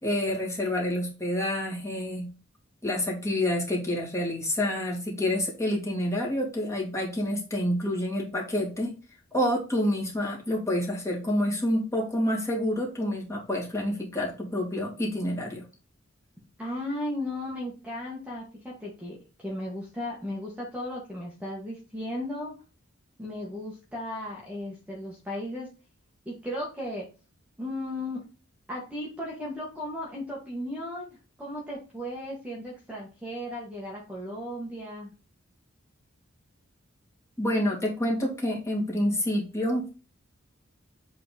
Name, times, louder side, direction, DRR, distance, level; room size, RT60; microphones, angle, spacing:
voice 1, 0.0-2.3 2.8-8.9 9.3-15.6 37.4-39.9, left 1 dB, 15° left, -2 dB, 2.3 m, -28 dB
voice 2, 16.6-22.5 23.2-25.7 26.2-27.1 27.6-28.2 28.7-35.1, left 1 dB, 5° right, -4 dB, 1.5 m, -35 dB
7.6 x 3.9 x 4.1 m, 0.33 s
head